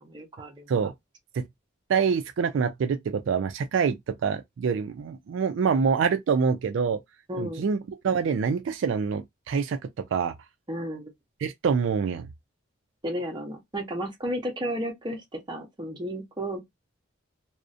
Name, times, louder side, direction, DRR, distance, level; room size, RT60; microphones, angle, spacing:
voice 1, 0.0-0.6 7.3-7.7 10.7-11.1 13.0-16.6, equal, 20° right, 0.7 m, -33 dB
voice 2, 1.9-3.0 3.3-4.0 4.2-7.0 7.4-9.8 10.1-10.3 11.4-12.3, right 6 dB, 70° right, 0.3 m, -25 dB
2.4 x 2.0 x 2.5 m
head